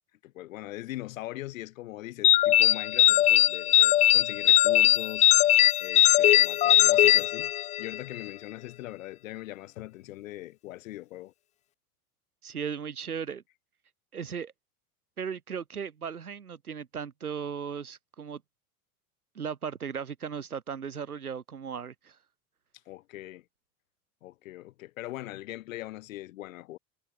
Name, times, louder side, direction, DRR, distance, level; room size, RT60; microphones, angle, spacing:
voice 1, 0.2-7.5 7.8-11.3 22.9-23.4 24.2-26.8, left 16 dB, 60° left, 7.8 m, -41 dB
sound 1, 2.2-8.0, left 13 dB, 20° left, 0.4 m, -20 dB
voice 2, 12.4-13.4 14.1-14.5 15.2-18.4 19.3-22.2, right 7 dB, 80° right, 3.4 m, -36 dB
figure-of-eight pair, 75°, 44 cm